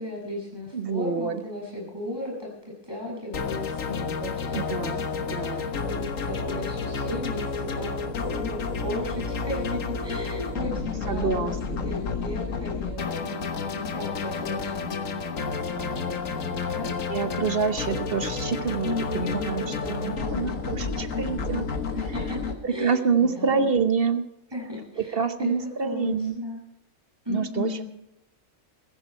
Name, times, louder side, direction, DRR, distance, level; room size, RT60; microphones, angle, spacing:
voice 1, 0.0-2.5 2.8-13.4 13.7-16.9 18.8-21.2 21.9-23.7 24.5-26.6 27.2-27.8, left 2 dB, 15° right, -2 dB, 7.2 m, -36 dB
voice 2, 0.7-1.4 4.5-5.7 11.1-11.9 17.1-21.7 22.6-24.2 25.0-26.3 27.3-27.8, right 5 dB, 50° right, 10 dB, 1.1 m, -27 dB
sound 1, 3.3-22.5, left 5 dB, 75° left, 1.7 m, -30 dB
16.0 x 15.0 x 4.6 m, 0.87 s
omnidirectional pair, 1.4 m